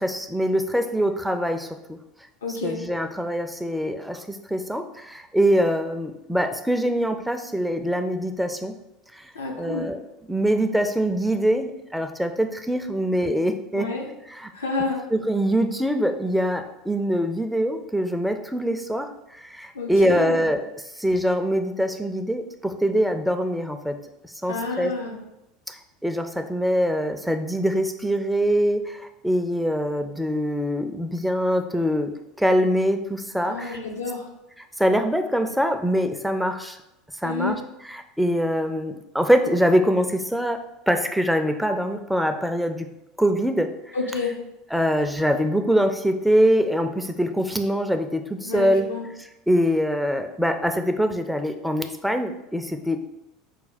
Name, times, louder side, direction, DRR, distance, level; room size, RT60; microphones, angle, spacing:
voice 1, 0.0-2.0 2.6-8.7 9.1-9.3 9.6-10.0 10.3-13.9 14.3-14.5 15.1-20.6 21.0-24.0 24.2-24.9 25.7-25.8 26.0-32.1 32.4-33.8 34.8-36.8 37.2-37.6 37.9-40.6 40.9-42.9 43.2-44.0 44.7-48.9 49.5-53.0, equal, ahead, 5 dB, 0.4 m, -23 dB
voice 2, 2.4-2.8 9.3-9.9 13.7-14.1 14.5-15.0 19.7-20.4 24.5-25.2 33.5-34.3 37.2-37.6 43.9-44.4 48.4-49.0, left 3 dB, 80° left, 0 dB, 0.8 m, -29 dB
4.4 x 2.2 x 4.0 m, 0.89 s
hypercardioid pair, 75°, 0 cm